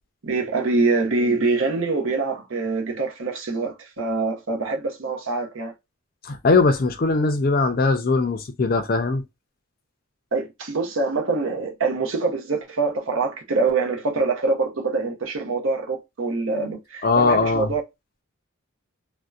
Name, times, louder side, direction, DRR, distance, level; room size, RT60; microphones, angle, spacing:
voice 1, 0.2-5.7 10.3-17.8, right 3 dB, 65° right, 0.7 m, -24 dB
voice 2, 6.2-9.2 17.0-17.7, left 3 dB, 40° left, 0.4 m, -20 dB
2.6 x 2.1 x 2.3 m
head